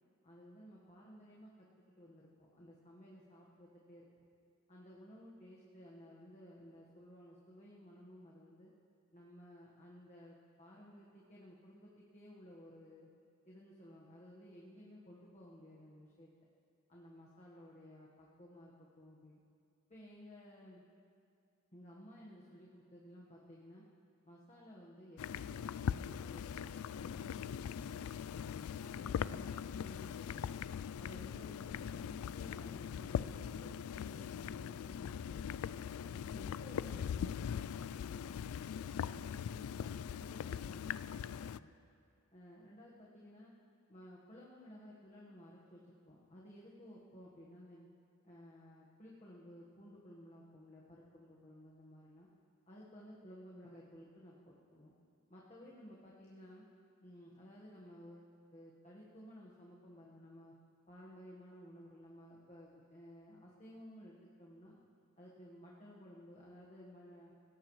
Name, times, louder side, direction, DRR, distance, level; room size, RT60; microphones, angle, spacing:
voice 1, 0.2-1.7 2.0-4.1 4.7-8.7 9.1-13.1 13.5-16.3 16.9-19.4 19.9-20.8 21.7-23.8 24.2-28.0 28.4-30.6 31.0-35.6 36.0-38.4 38.7-41.7 42.3-43.5 43.9-47.9 48.2-52.3 52.7-54.9 55.3-56.6 57.0-60.5 60.9-64.8 65.2-67.3, equal, 30° left, -5 dB, 1.4 m, -56 dB
sound 1, 25.2-41.6, left 8 dB, 80° left, 0.3 m, -41 dB
21.0 x 17.5 x 3.2 m, 2.4 s
head